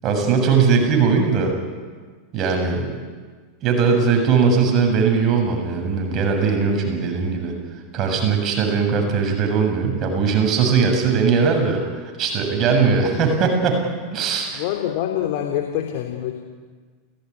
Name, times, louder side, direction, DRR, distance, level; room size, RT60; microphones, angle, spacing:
voice 1, 0.0-1.5 2.3-3.0 3.6-7.5 7.9-11.8 12.2-13.8 14.1-14.6, right 5 dB, 35° right, 3 dB, 7.1 m, -19 dB
voice 2, 14.5-16.3, left 11 dB, 50° left, 3 dB, 3.2 m, -25 dB
29.0 x 18.0 x 9.8 m, 1.5 s
figure-of-eight pair, 85°, 0 cm